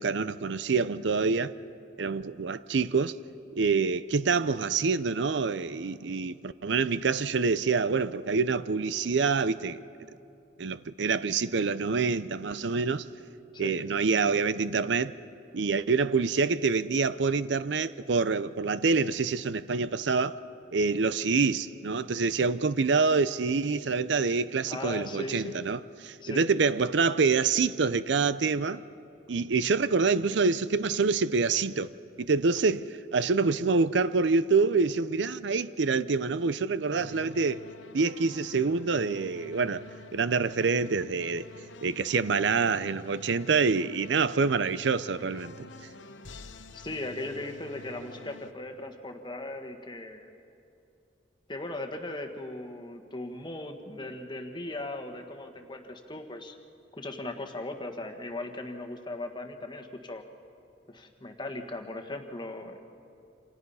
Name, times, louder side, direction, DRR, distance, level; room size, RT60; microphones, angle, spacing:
voice 1, 0.0-1.5 2.0-3.1 3.5-9.8 10.6-13.0 13.6-15.1 15.5-20.4 20.7-28.8 29.3-31.9 32.2-37.6 37.9-39.8 40.1-41.5 41.8-45.7, right 4 dB, 70° right, 0.6 m, -26 dB
voice 2, 24.6-25.6 26.2-26.4 46.7-50.3 51.5-56.5 56.9-60.2 60.9-62.8, left 2 dB, 25° left, 1.5 m, -38 dB
sound 1, 37.0-48.5, left 3 dB, 80° left, 1.0 m, -49 dB
28.5 x 26.5 x 5.6 m
head